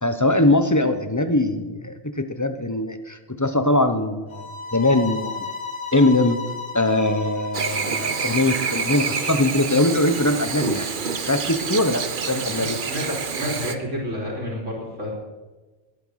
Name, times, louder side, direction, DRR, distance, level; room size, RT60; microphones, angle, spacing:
voice 1, 0.0-5.5 5.9-6.4 6.7-10.9 11.2-12.8, left 2 dB, 15° left, 9 dB, 0.9 m, -21 dB
sound 1, 4.3-9.3, left 4 dB, 70° left, 2.5 m, -35 dB
Chirp tweet / Buzz, 7.5-13.7, right 6 dB, 45° right, 1.0 m, -27 dB
voice 2, 12.3-15.1, equal, 80° right, -2 dB, 4.0 m, -30 dB
19.0 x 9.3 x 6.5 m, 1.2 s
omnidirectional pair, 1.2 m